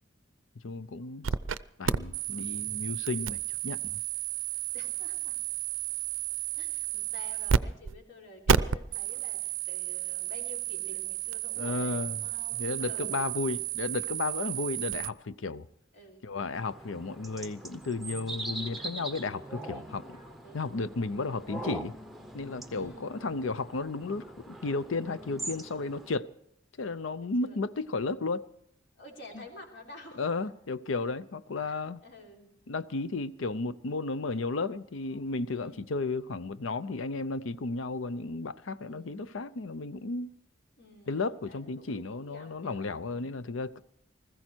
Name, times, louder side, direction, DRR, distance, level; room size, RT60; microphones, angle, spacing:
voice 1, 0.6-1.3 1.8-4.0 11.6-12.2 12.5-15.7 16.2-20.2 20.5-21.9 22.3-26.3 26.8-28.4 29.3-29.4 30.1-32.0 32.7-40.3 41.1-43.8, left 3 dB, 85° left, 0.6 m, -33 dB
sound 1, 1.2-1.6 1.8-7.6 7.8-8.0 8.5-15.1, right 8 dB, 85° right, 0.5 m, -32 dB
voice 2, 4.7-5.4 6.6-13.3 14.8-14.9 15.9-16.2 19.5-21.0 22.7-23.2 27.1-27.6 29.0-30.5 31.7-31.8 32.0-32.5 35.5-35.9 38.8-39.3 40.8-43.4, left 2 dB, 65° left, 3.8 m, -51 dB
sound 2, 16.5-26.1, right 1 dB, ahead, 0.7 m, -42 dB
20.0 x 14.5 x 4.5 m
head